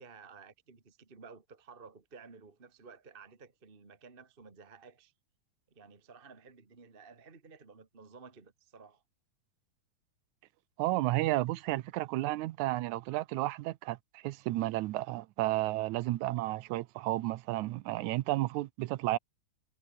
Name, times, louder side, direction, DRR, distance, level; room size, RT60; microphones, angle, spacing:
voice 1, 0.0-5.1 5.7-9.0, right 5 dB, 20° right, 1.7 m, -54 dB
voice 2, 10.8-19.2, right 17 dB, 80° right, 1.8 m, -32 dB
omnidirectional pair, 4.1 m